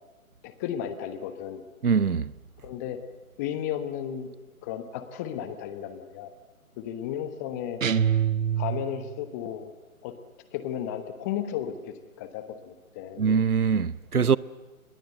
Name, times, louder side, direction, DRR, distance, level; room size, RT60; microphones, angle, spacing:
voice 1, 0.4-1.6 2.6-3.0 3.4-4.3 4.6-6.3 6.8-7.8 8.6-9.7 10.0-10.1 10.5-11.7 12.2-13.2, left 10 dB, 10° left, 1.0 m, -34 dB
voice 2, 1.8-2.3 13.2-14.4, right 6 dB, 90° right, 0.9 m, -23 dB
sound 1, 7.8-9.2, right 8 dB, 65° right, 1.0 m, -25 dB
28.5 x 21.5 x 7.9 m
figure-of-eight pair, 145°, 43 cm